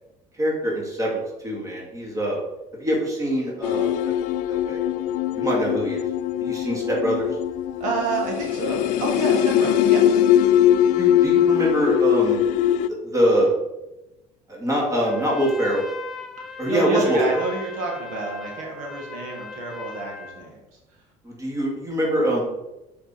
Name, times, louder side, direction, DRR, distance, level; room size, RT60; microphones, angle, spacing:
voice 1, 0.3-2.4 2.7-4.1 4.5-4.8 5.3-6.0 6.4-7.3 10.9-12.4 12.9-13.5 14.5-15.8 16.6-17.4 21.2-22.4, equal, 25° right, -2 dB, 2.4 m, -24 dB
sound 1, 3.6-12.9, left 10 dB, 70° left, 0.4 m, -21 dB
voice 2, 7.8-10.2 16.5-20.6, right 3 dB, 75° right, 0 dB, 2.0 m, -29 dB
Trumpet, 15.0-20.4, left 4 dB, ahead, 1.0 m, -38 dB
6.5 x 5.3 x 4.4 m, 0.96 s
cardioid pair, 125°, 14 cm